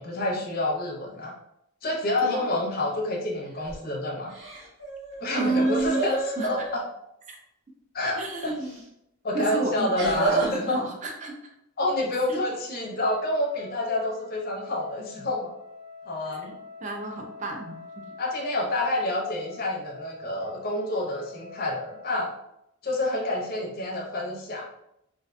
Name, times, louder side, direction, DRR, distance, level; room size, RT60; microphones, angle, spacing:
voice 1, 0.0-1.4 1.8-4.3 5.2-6.8 7.9-8.5 9.2-10.8 11.8-15.5 16.1-16.6 18.2-22.3 22.8-24.6, left 1 dB, 45° left, -2 dB, 0.5 m, -28 dB
sound 1, 3.5-3.9 4.3-6.8 8.6-8.8 10.0-10.6, right 3 dB, 55° right, 0.8 m, -31 dB
voice 2, 5.3-6.5 7.3-7.4 8.2-8.8 9.3-11.4 12.3-12.4 16.4-16.5 16.8-17.8, right 2 dB, 35° right, 2 dB, 0.4 m, -30 dB
Wind instrument woodwind instrument, 12.9-22.3, left 4 dB, 85° right, 1.1 m, -45 dB
2.5 x 2.1 x 2.5 m, 0.80 s
head